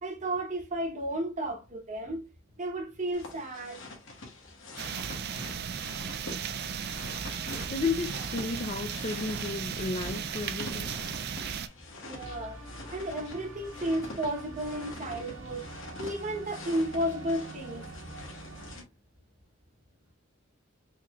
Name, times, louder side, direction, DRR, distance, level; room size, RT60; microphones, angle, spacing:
voice 1, 0.0-2.2 2.6-3.8 12.0-12.6 12.9-15.6 16.0-17.9, right 1 dB, 40° right, 1.0 m, -33 dB
sound 1, 3.1-18.8, left 2 dB, 70° left, 1.2 m, -45 dB
sound 2, 4.8-11.7, right 7 dB, 55° right, 0.4 m, -36 dB
voice 2, 5.3-5.8 7.7-11.1, left 4 dB, 35° left, 0.4 m, -34 dB
sound 3, 12.2-18.8, right 2 dB, 85° right, 1.3 m, -45 dB
4.2 x 3.0 x 2.4 m
head